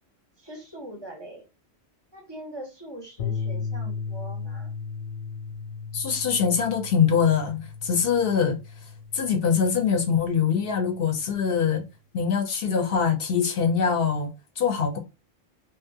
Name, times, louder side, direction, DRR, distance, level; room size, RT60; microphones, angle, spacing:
voice 1, 0.4-1.4 2.1-4.7, right 1 dB, 30° right, 0.5 m, -41 dB
sound 1, 3.2-11.6, left 5 dB, 90° left, 0.9 m, -36 dB
voice 2, 5.9-8.6 9.1-11.8 12.1-14.3 14.6-15.0, left 6 dB, 60° left, 0.7 m, -23 dB
2.6 x 2.1 x 2.6 m
omnidirectional pair, 1.2 m